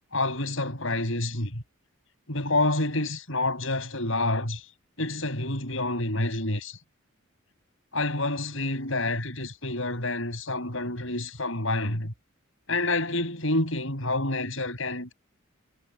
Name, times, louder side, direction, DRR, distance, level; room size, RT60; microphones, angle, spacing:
voice 1, 0.1-1.6 2.3-4.6 5.0-6.8 7.9-12.1 12.7-15.1, left 2 dB, 65° left, 7.6 m, -28 dB
head